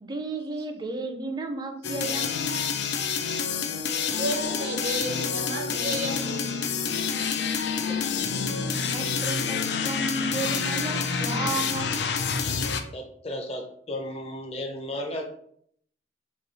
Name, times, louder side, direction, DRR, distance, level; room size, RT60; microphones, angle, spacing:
voice 1, 0.0-2.7 7.4-8.3 8.9-11.9, right 3 dB, 25° right, 4 dB, 0.5 m, -34 dB
sound 1, 1.8-12.8, left 6 dB, 70° left, 0.4 m, -28 dB
voice 2, 4.1-6.6 7.3-7.4, right 1 dB, 60° right, 1 dB, 0.6 m, -32 dB
voice 3, 12.9-15.2, left 1 dB, 35° left, 3 dB, 0.6 m, -34 dB
3.1 x 2.7 x 4.0 m, 0.65 s
head